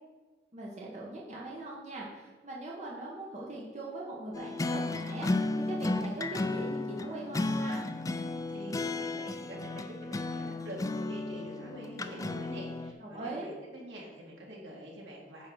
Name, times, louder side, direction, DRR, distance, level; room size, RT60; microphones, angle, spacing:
voice 1, 0.5-7.8 13.0-13.5, right 2 dB, 40° right, -4 dB, 1.2 m, -41 dB
sound 1, 4.3-12.9, left 2 dB, 20° left, 0.3 m, -34 dB
voice 2, 8.5-15.5, equal, 80° right, -2 dB, 2.1 m, -45 dB
9.3 x 3.7 x 6.2 m, 1.3 s
head